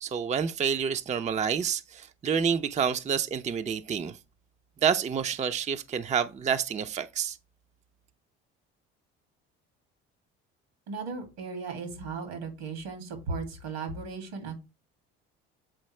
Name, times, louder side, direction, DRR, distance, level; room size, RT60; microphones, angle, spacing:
voice 1, 0.0-4.2 4.8-7.4, right 7 dB, 25° right, 0.5 m, -28 dB
voice 2, 10.9-14.6, right 4 dB, 85° right, 2.4 m, -36 dB
7.7 x 4.1 x 3.2 m
supercardioid pair, 70°, 30 cm